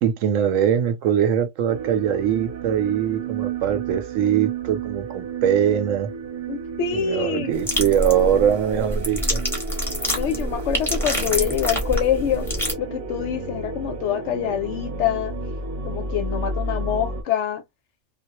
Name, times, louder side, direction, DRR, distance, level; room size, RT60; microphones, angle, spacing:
voice 1, 0.0-6.1 6.9-9.4, right 9 dB, 75° right, 0.9 m, -22 dB
sound 1, 1.7-17.2, right 4 dB, 50° right, 0.8 m, -32 dB
voice 2, 6.5-7.6 10.1-12.5 12.8-15.3 15.8-17.6, left 9 dB, 70° left, 0.8 m, -25 dB
sound 2, 7.5-12.7, equal, ahead, 0.8 m, -26 dB
2.3 x 2.0 x 2.9 m
omnidirectional pair, 1.4 m